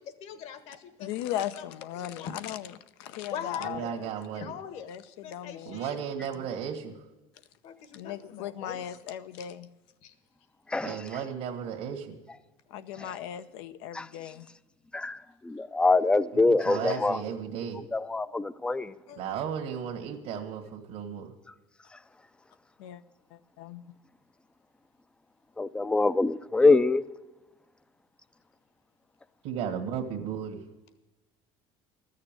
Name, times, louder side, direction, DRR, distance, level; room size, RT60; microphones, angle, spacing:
voice 1, 0.0-1.1 1.4-1.7 2.0-2.3 3.3-4.9 5.2-6.0 7.6-8.8 10.0-10.1 19.1-19.2, left 8 dB, 60° left, 1.4 m, -41 dB
voice 2, 1.0-4.1 4.9-5.8 6.3-6.4 7.9-9.7 12.7-14.5 22.8-23.0 23.3-23.8, left 11 dB, 85° left, 0.7 m, -38 dB
voice 3, 3.6-4.5 5.6-6.9 10.8-12.2 16.3-17.8 19.2-21.3 29.4-30.6, right 8 dB, 70° right, 1.5 m, -35 dB
voice 4, 10.7-11.0 13.9-14.1 14.9-17.2 17.9-19.0 25.6-27.0, left 3 dB, 10° left, 0.4 m, -24 dB
13.5 x 6.7 x 8.8 m
cardioid pair, 130°, 12 cm